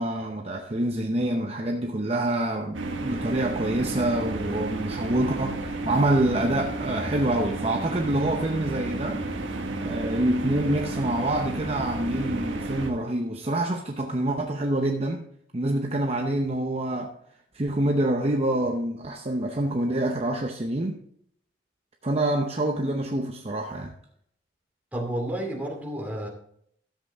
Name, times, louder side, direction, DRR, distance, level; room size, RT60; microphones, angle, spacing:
voice 1, 0.0-9.2 9.8-15.2 15.5-17.1 17.5-21.0 22.0-23.9, right 1 dB, 35° right, 0.8 m, -26 dB
sound 1, 2.7-12.9, right 2 dB, 85° right, 1.5 m, -32 dB
voice 2, 24.9-26.3, right 1 dB, 10° right, 2.4 m, -31 dB
13.0 x 7.9 x 3.5 m
head